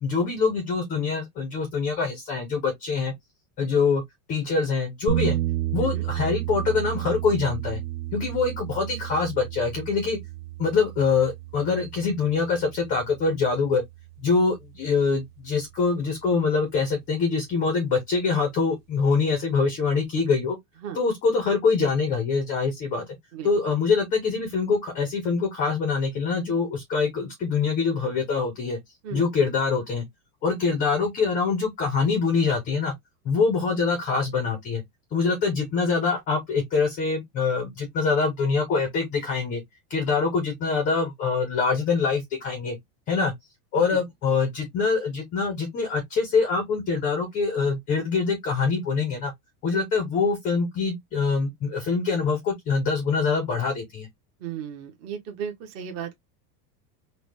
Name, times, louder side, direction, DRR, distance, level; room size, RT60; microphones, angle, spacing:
voice 1, 0.0-3.1 3.6-4.0 4.3-5.4 5.7-7.8 8.1-10.2 10.6-13.8 14.2-20.6 20.9-23.0 23.4-28.8 29.1-30.0 30.4-32.9 33.2-34.8 35.1-39.6 39.9-42.8 43.1-43.3 43.7-49.3 49.6-54.1, left 4 dB, 20° left, 0.4 m, -24 dB
sound 1, 5.1-15.1, right 12 dB, 70° right, 1.2 m, -32 dB
voice 2, 54.4-56.2, right 8 dB, 30° right, 0.6 m, -35 dB
3.9 x 2.0 x 3.1 m
supercardioid pair, 155°, 49 cm